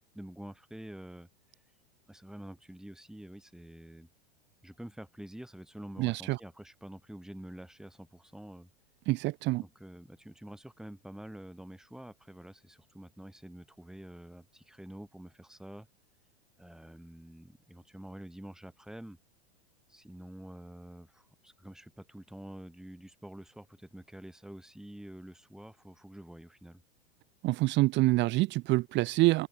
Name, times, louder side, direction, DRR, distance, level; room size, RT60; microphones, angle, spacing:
voice 1, 0.1-1.3 2.1-4.1 4.6-8.7 9.6-15.9 16.6-19.2 19.9-26.8, right 1 dB, ahead, 6.1 m, -47 dB
voice 2, 6.0-6.4 9.1-9.6 27.4-29.5, right 19 dB, 35° right, 1.4 m, -26 dB
open air
supercardioid pair, 135°, 32 cm